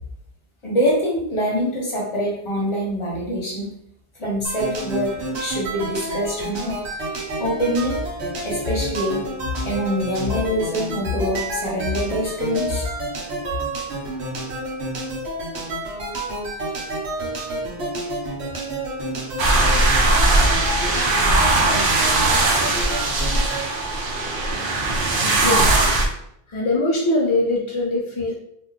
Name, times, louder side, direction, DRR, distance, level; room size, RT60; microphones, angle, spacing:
voice 1, 0.6-3.7 4.2-6.7 7.4-8.0 8.4-9.2 9.6-12.8, equal, 30° left, -4 dB, 1.0 m, -24 dB
sound 1, 4.4-23.6, right 1 dB, 85° right, 1.0 m, -29 dB
sound 2, 19.4-26.1, right 2 dB, 60° right, 0.7 m, -19 dB
voice 2, 25.2-25.9 26.5-28.3, left 2 dB, 50° left, -3 dB, 0.3 m, -22 dB
2.6 x 2.2 x 3.5 m, 0.73 s
omnidirectional pair, 1.1 m